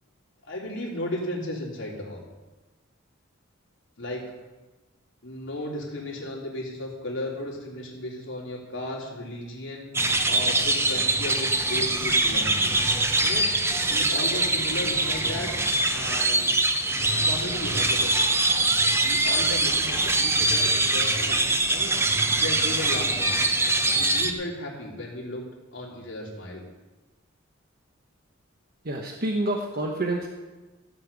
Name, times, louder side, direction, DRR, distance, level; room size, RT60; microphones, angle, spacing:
voice 1, 0.4-2.2 4.0-4.2 5.2-10.0 10.3-12.8 13.2-13.5 13.8-15.6 15.9-16.6 17.2-18.3 18.8-21.4 21.7-22.0 22.4-23.3 23.9-25.4 25.7-26.7, left 1 dB, 65° left, -3 dB, 3.6 m, -35 dB
sound 1, 9.9-24.3, right 2 dB, 15° right, 0.9 m, -23 dB
voice 2, 28.8-30.3, right 1 dB, 50° right, 1 dB, 1.2 m, -28 dB
15.5 x 5.8 x 8.2 m, 1.2 s
head